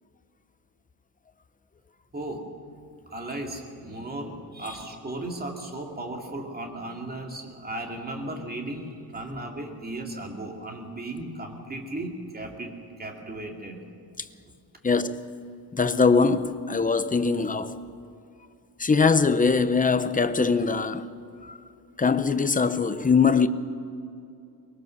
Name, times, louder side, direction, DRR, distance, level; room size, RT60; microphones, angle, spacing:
voice 1, 2.1-2.5 3.1-13.8, right 1 dB, 20° right, 2.6 m, -36 dB
voice 2, 14.8-15.3 15.7-17.8 18.8-21.1 21.4-21.6 22.0-23.5, left 4 dB, 20° left, 0.7 m, -22 dB
23.0 x 21.0 x 6.5 m
wide cardioid pair, 160°, 42 cm